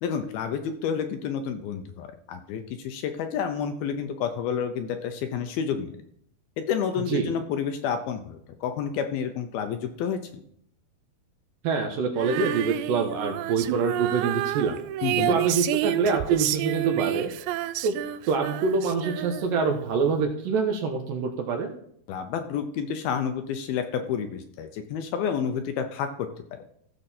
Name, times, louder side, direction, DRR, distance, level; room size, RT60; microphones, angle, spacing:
voice 1, 0.0-6.0 6.6-10.2 15.0-15.4 22.1-26.3, left 7 dB, 75° left, 7 dB, 2.4 m, -30 dB
voice 2, 11.6-14.8 15.3-17.3 17.8-18.0 18.3-21.7, right 5 dB, 70° right, 3 dB, 2.4 m, -25 dB
Female singing, 12.2-19.6, right 14 dB, 90° right, 2.7 m, -29 dB
15.5 x 6.7 x 4.2 m, 0.66 s
omnidirectional pair, 4.9 m